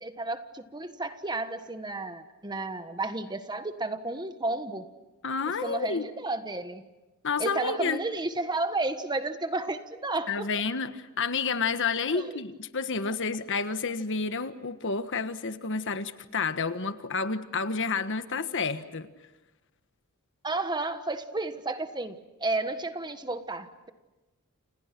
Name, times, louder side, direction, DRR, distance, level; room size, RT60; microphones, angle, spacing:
voice 1, 0.0-4.8 5.6-6.8 7.4-10.5 12.1-12.4 20.4-23.9, right 2 dB, 20° right, 9 dB, 1.4 m, -32 dB
voice 2, 5.2-6.1 7.2-8.0 10.3-19.1, left 4 dB, 55° left, 10 dB, 1.4 m, -30 dB
29.5 x 29.5 x 6.1 m, 1.1 s
head